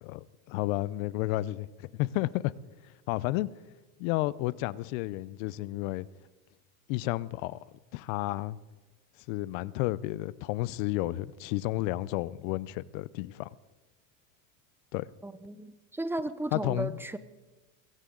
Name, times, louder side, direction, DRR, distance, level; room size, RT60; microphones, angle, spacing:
voice 1, 0.0-2.5 3.1-3.5 4.0-6.1 6.9-7.6 7.9-8.6 9.3-13.5 14.9-15.0 16.5-17.0, left 17 dB, 70° left, 0.7 m, -31 dB
voice 2, 15.2-17.2, right 2 dB, 5° right, 0.6 m, -35 dB
22.0 x 16.0 x 3.9 m
supercardioid pair, 125°, 41 cm